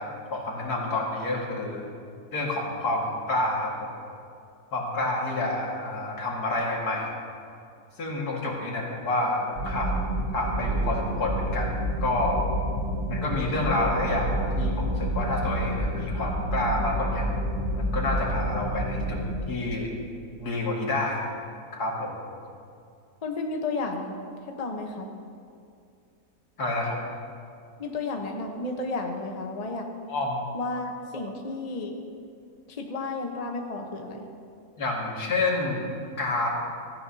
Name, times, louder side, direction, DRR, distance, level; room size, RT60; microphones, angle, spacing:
voice 1, 0.0-1.9 2.3-3.9 4.7-7.1 8.0-9.9 10.3-12.4 13.1-17.3 17.8-19.2 19.5-19.9 20.4-21.2 21.7-22.2 26.6-27.0 30.1-30.5 34.8-36.5, left 2 dB, 80° left, -2 dB, 2.5 m, -28 dB
sound 1, 9.6-19.3, right 1 dB, 80° right, 3.0 m, -29 dB
voice 2, 23.2-25.1 27.8-29.8 30.5-32.0 32.7-34.3, left 3 dB, 30° left, 2 dB, 1.0 m, -32 dB
17.0 x 14.5 x 2.8 m, 2.4 s
omnidirectional pair, 1.7 m